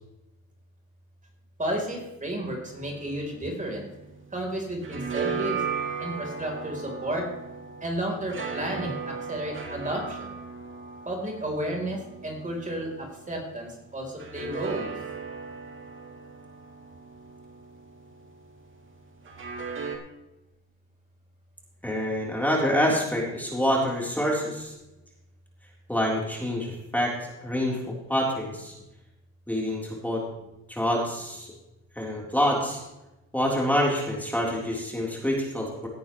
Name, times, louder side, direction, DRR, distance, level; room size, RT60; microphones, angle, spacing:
voice 1, 1.6-3.9 4.3-5.6 6.0-7.3 7.8-10.4 11.1-14.9, right 1 dB, 25° right, 0 dB, 3.9 m, -32 dB
sound 1, 2.7-4.4 4.6-13.3 14.2-18.3 19.2-20.0, right 5 dB, 40° right, 2.7 m, -36 dB
voice 2, 21.8-24.7 25.9-27.1 27.4-28.7 29.5-30.2 30.7-31.5 32.0-32.8 33.3-35.9, equal, 5° left, -2 dB, 3.7 m, -26 dB
17.5 x 9.8 x 3.2 m, 0.96 s
cardioid pair, 90°, 30 cm